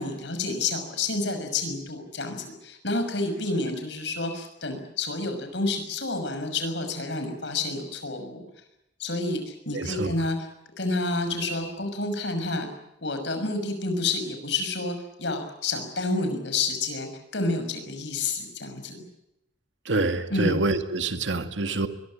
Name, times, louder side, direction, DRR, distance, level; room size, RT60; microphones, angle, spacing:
voice 1, 0.0-8.4 9.0-10.4 10.8-12.7 13.0-19.0 20.3-20.6, left 3 dB, 70° left, 7 dB, 6.1 m, -29 dB
voice 2, 9.7-10.1 19.9-21.9, right 2 dB, 85° right, 8 dB, 2.1 m, -26 dB
23.5 x 22.0 x 8.8 m, 0.87 s
head